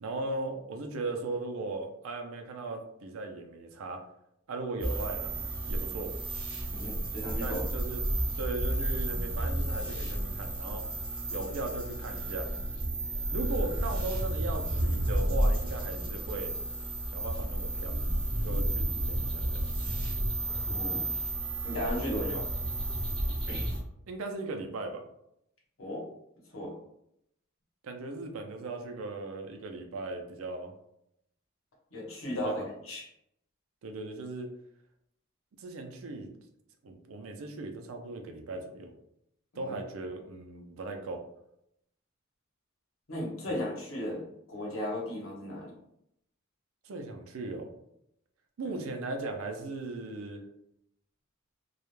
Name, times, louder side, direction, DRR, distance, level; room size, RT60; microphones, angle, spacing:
voice 1, 0.0-4.0 4.5-5.3 5.6-6.1 7.4-8.0 8.4-10.9 11.3-12.5 13.3-16.5 17.1-18.0 18.4-19.7 22.0-22.4 24.1-25.1 27.8-30.7 32.4-32.7 33.8-34.5 35.6-36.3 36.8-38.9 39.6-41.2 43.5-43.6 46.8-47.7 48.6-50.4, right 2 dB, 85° right, 4 dB, 0.4 m, -38 dB
sound 1, 4.8-23.8, right 1 dB, 25° right, 0.5 m, -32 dB
voice 2, 6.7-7.6 20.5-21.1 21.6-22.4 23.5-23.7 25.8-26.1 26.5-26.7 31.9-33.0 39.5-39.7 43.1-45.7 48.6-48.7, left 1 dB, 75° left, -3 dB, 0.9 m, -36 dB
2.3 x 2.1 x 3.0 m, 0.77 s
head